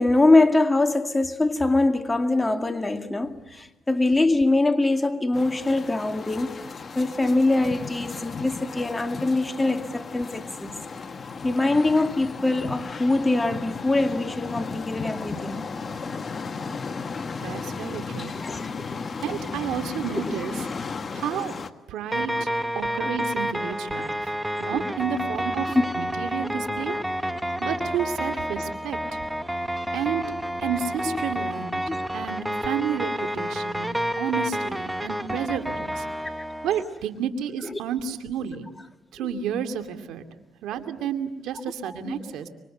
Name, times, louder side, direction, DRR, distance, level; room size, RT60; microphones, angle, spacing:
voice 1, 0.0-6.5 7.0-10.7 11.4-15.7 18.3-18.7 19.1-19.2 20.3-20.4 23.0-23.1 25.8-25.9 31.1-31.2 31.9-32.0 41.8-42.3, left 2 dB, 15° left, 2.1 m, -23 dB
sound 1, 5.3-21.7, left 4 dB, 40° left, 1.6 m, -35 dB
voice 2, 17.4-18.3 19.2-20.5 21.1-21.5 21.9-24.3 24.6-27.0 27.6-29.2 29.9-30.3 30.6-31.8 32.1-36.0 36.6-38.7 39.1-40.3 40.6-42.5, right 8 dB, 85° right, 2.5 m, -31 dB
sound 2, 22.1-36.8, equal, 5° right, 1.5 m, -29 dB
26.5 x 24.5 x 8.0 m
cardioid pair, 90°, 0 cm